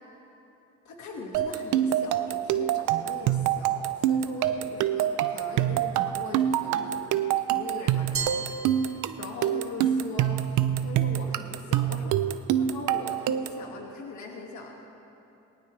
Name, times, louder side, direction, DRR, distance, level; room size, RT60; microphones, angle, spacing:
voice 1, 0.9-14.9, left 3 dB, 70° left, 0 dB, 2.0 m, -41 dB
sound 1, 1.3-13.7, right 11 dB, 85° right, 0.6 m, -26 dB
Glass, 8.1-9.6, right 6 dB, 45° right, 1.6 m, -35 dB
20.5 x 18.5 x 3.3 m, 3.0 s
cardioid pair, 90°, 30 cm